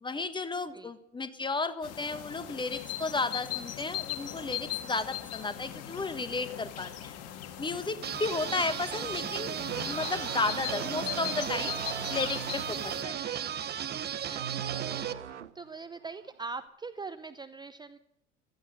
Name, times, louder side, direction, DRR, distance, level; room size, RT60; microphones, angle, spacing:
voice 1, 0.0-7.1 7.6-11.7 12.1-13.3, left 3 dB, 15° left, 12 dB, 1.2 m, -33 dB
sound 1, 1.8-13.0, left 11 dB, 45° left, 1.7 m, -39 dB
sound 2, 8.0-15.1, right 9 dB, 30° right, 1.0 m, -35 dB
sound 3, 9.7-15.7 16.0-16.3, right 8 dB, 90° right, 0.6 m, -41 dB
voice 2, 14.3-18.0, right 4 dB, 10° right, 11 dB, 0.7 m, -43 dB
16.5 x 13.5 x 5.4 m, 0.85 s
figure-of-eight pair, 75°, 34 cm